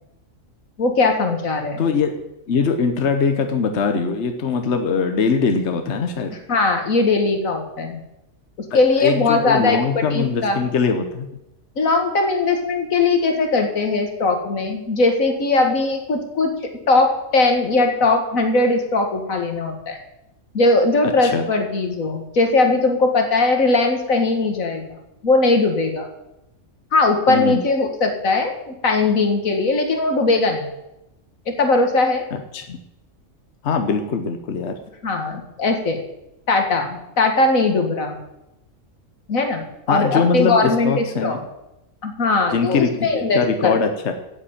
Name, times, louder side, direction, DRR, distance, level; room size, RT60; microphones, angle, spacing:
voice 1, 0.8-1.8 6.5-8.0 8.7-10.6 11.8-20.0 20.5-25.0 25.2-26.1 26.9-30.7 31.5-32.3 35.0-36.0 36.5-38.2 39.3-41.4 42.0-43.7, left 3 dB, 85° left, 5 dB, 2.1 m, -19 dB
voice 2, 1.8-2.2 2.5-6.3 8.7-11.3 21.2-21.5 27.3-27.6 32.3-32.8 33.6-34.7 39.9-41.4 42.5-44.1, left 5 dB, 60° left, 6 dB, 1.3 m, -22 dB
9.5 x 8.0 x 8.7 m, 0.89 s
omnidirectional pair, 1.4 m